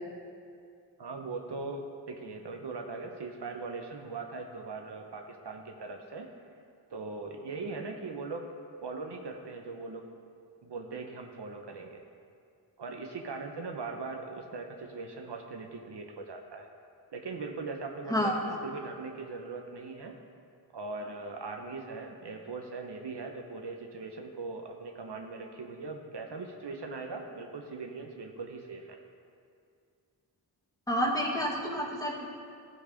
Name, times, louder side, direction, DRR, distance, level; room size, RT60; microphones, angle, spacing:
voice 1, 1.0-6.3 6.9-8.5 8.8-10.1 10.6-12.0 12.8-16.7 17.1-20.1 20.7-28.9, right 3 dB, 60° right, 3 dB, 1.0 m, -40 dB
voice 2, 30.9-32.3, equal, 10° left, -3 dB, 2.1 m, -29 dB
13.5 x 4.6 x 5.1 m, 2.3 s
cardioid pair, 50°, 45 cm